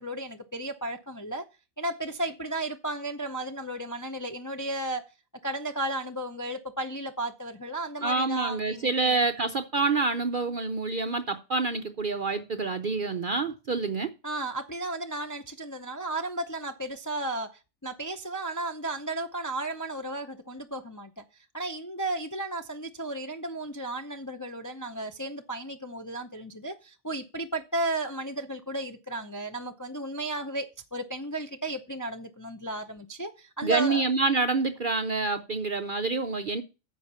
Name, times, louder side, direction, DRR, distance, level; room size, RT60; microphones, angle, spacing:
voice 1, 0.0-1.4 1.8-5.0 5.4-9.2 14.2-21.2 21.5-34.1, right 2 dB, 20° left, 0.5 m, -34 dB
voice 2, 8.0-14.1 33.6-36.6, right 3 dB, 50° right, 0.6 m, -27 dB
9.7 x 6.4 x 5.6 m
omnidirectional pair, 1.5 m